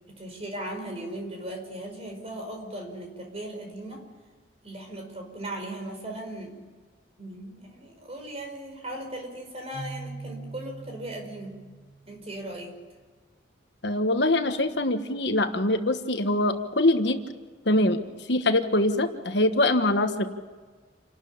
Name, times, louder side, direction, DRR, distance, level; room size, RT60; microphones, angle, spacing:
voice 1, 0.1-4.1 4.6-6.6 7.2-11.6 12.0-12.8, right 1 dB, 35° right, 3 dB, 5.3 m, -38 dB
Keyboard (musical), 9.7-12.6, right 2 dB, 20° left, 5.4 m, -42 dB
voice 2, 13.8-17.2 17.6-18.0 18.3-20.3, left 1 dB, 65° left, 7 dB, 1.4 m, -23 dB
28.5 x 13.0 x 8.8 m, 1.4 s
head